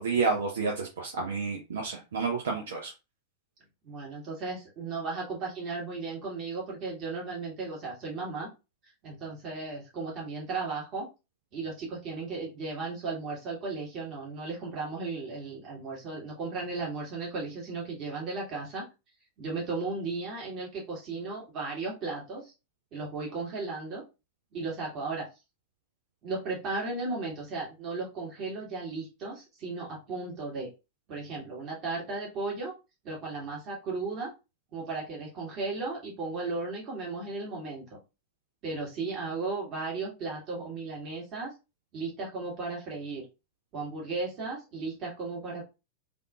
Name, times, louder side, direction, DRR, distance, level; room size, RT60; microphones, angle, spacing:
voice 1, 0.0-2.9, right 4 dB, 65° right, 0 dB, 0.6 m, -30 dB
voice 2, 3.8-8.5 9.0-11.1 11.5-18.8 19.4-22.5 22.9-24.0 24.5-25.3 26.2-30.7 31.1-32.7 33.0-34.3 34.7-38.0 38.6-41.5 41.9-43.3 43.7-45.6, right 3 dB, 35° right, -3 dB, 1.7 m, -35 dB
3.4 x 2.6 x 2.4 m, 0.27 s
figure-of-eight pair, 90°, 0 cm